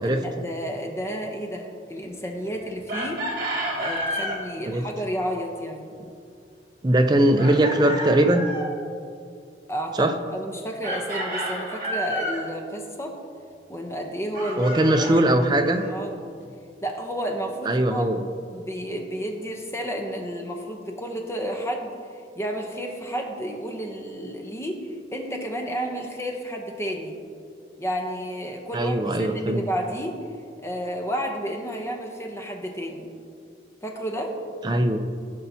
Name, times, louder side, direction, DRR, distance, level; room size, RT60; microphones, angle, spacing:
voice 1, 0.0-3.3 3.8-5.9 9.7-13.2 13.7-15.6 15.9-16.2 16.8-18.1 18.5-21.9 22.4-27.2 27.8-30.2 30.6-33.1 33.8-34.4, equal, 15° left, 2 dB, 0.7 m, -31 dB
Chicken rooster, 2.9-4.4 7.4-8.7 10.8-12.4 14.3-15.9, equal, 50° right, 1.7 m, -30 dB
voice 2, 6.8-8.5 10.0-10.1 14.6-15.8 17.7-18.2 28.7-29.6 34.6-35.0, right 1 dB, 25° right, 5 dB, 0.5 m, -20 dB
15.0 x 5.6 x 2.7 m, 2.4 s
head